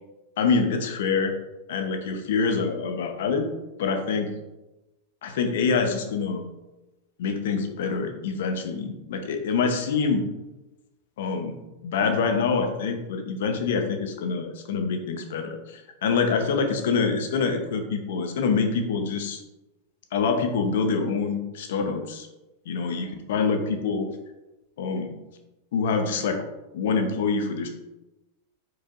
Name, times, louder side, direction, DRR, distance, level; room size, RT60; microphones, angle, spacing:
voice 1, 0.4-1.3 1.7-3.5 3.8-4.3 5.2-6.4 7.2-10.3 11.2-11.6 11.8-19.4 20.1-22.3 22.7-24.1 24.8-25.1 25.7-26.4 26.7-27.7, left 5 dB, 70° left, 5 dB, 0.8 m, -25 dB
4.7 x 4.5 x 2.5 m, 1.0 s
hypercardioid pair, 110°, 0 cm